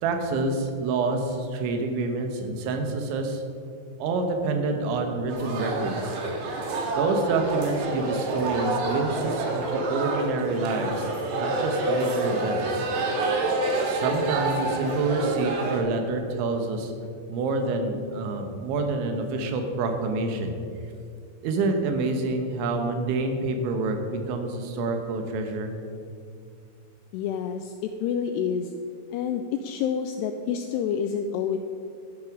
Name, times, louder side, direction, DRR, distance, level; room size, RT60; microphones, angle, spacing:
voice 1, 0.0-3.4 4.0-6.2 7.0-11.1 11.4-12.9 13.8-16.9 17.3-20.5 21.4-25.7, right 3 dB, 85° right, 5 dB, 3.5 m, -27 dB
sound 1, 5.3-15.8, right 2 dB, 65° right, 3.3 m, -27 dB
voice 2, 27.1-28.7 29.1-31.6, left 7 dB, 85° left, 7 dB, 2.4 m, -28 dB
12.5 x 10.5 x 4.8 m, 2.4 s
omnidirectional pair, 5.3 m